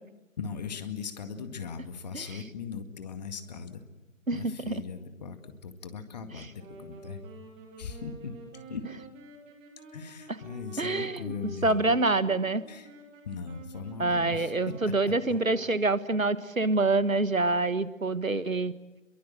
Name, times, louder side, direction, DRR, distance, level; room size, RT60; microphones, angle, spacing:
voice 1, 0.4-3.8 4.3-7.4 7.8-8.3 8.7-8.9 9.9-12.0 12.7-12.9 13.2-15.4, left 5 dB, 30° left, 9 dB, 2.0 m, -39 dB
Wind instrument woodwind instrument, 6.6-16.2, right 2 dB, 15° right, 2.7 m, -49 dB
voice 2, 10.8-11.3 11.6-12.6 14.0-18.7, right 2 dB, 85° right, 15 dB, 1.5 m, -26 dB
27.5 x 23.0 x 7.6 m, 1.1 s
figure-of-eight pair, 145°, 40 cm